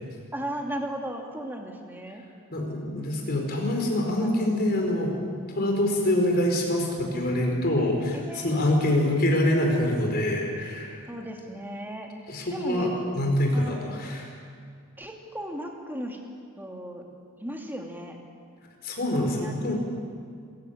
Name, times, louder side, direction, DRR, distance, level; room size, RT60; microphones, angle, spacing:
voice 1, 0.3-2.2 4.2-4.5 5.8-6.4 8.1-8.8 11.1-12.1 12.5-12.9 13.5-13.9 15.0-16.2 16.6-17.1 17.4-18.2 19.1-19.7, right 1 dB, 10° right, 1 dB, 2.5 m, -36 dB
voice 2, 2.5-5.2 5.5-11.0 12.3-12.9 13.1-14.2 18.8-19.7, left 1 dB, 45° left, 1 dB, 4.7 m, -25 dB
27.0 x 15.0 x 8.7 m, 2.2 s
head